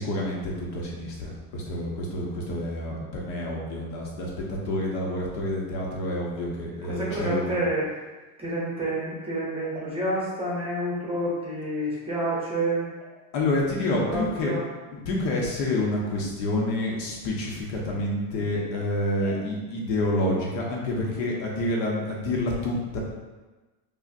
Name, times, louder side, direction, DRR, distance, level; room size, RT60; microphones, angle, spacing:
voice 1, 0.0-7.6 13.3-14.5 14.9-23.0, left 1 dB, 80° left, -2 dB, 1.1 m, -28 dB
voice 2, 6.8-7.9 8.4-12.9 14.1-14.6 19.2-19.3, right 1 dB, 10° right, -6 dB, 0.7 m, -29 dB
5.0 x 2.4 x 2.5 m, 1.2 s
supercardioid pair, 145°, 49 cm